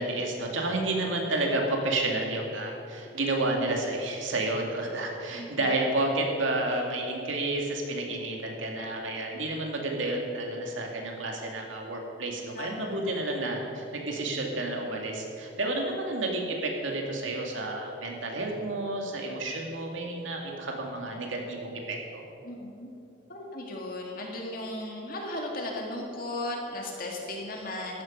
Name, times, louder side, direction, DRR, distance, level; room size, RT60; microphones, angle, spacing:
voice 1, 0.0-22.2, right 2 dB, 80° right, 1 dB, 2.2 m, -30 dB
voice 2, 5.4-5.7 12.5-13.1 22.4-22.9 23.3-28.0, left 1 dB, 45° left, 0 dB, 2.2 m, -36 dB
14.5 x 12.5 x 5.3 m, 2.7 s
head